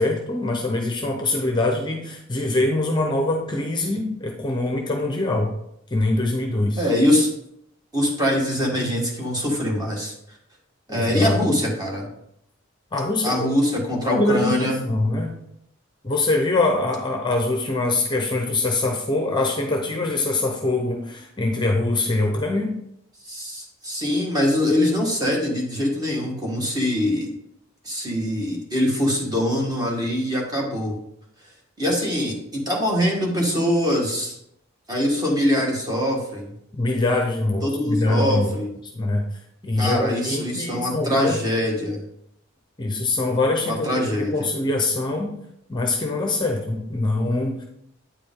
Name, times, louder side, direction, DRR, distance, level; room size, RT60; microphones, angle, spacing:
voice 1, 0.0-5.5 5.9-6.9 10.9-11.4 12.9-13.5 14.0-15.4 16.0-22.7 36.7-38.5 38.9-39.2 39.6-41.4 42.8-45.3 45.7-47.6, left 2 dB, 20° left, 2 dB, 0.7 m, -23 dB
voice 2, 6.8-7.3 7.9-10.1 10.9-12.1 13.2-14.8 23.2-27.3 27.8-31.0 31.8-34.3 34.9-36.5 37.6-38.7 39.8-42.0 43.6-44.5, left 1 dB, 20° right, -1 dB, 1.5 m, -23 dB
8.6 x 4.9 x 3.7 m, 0.76 s
head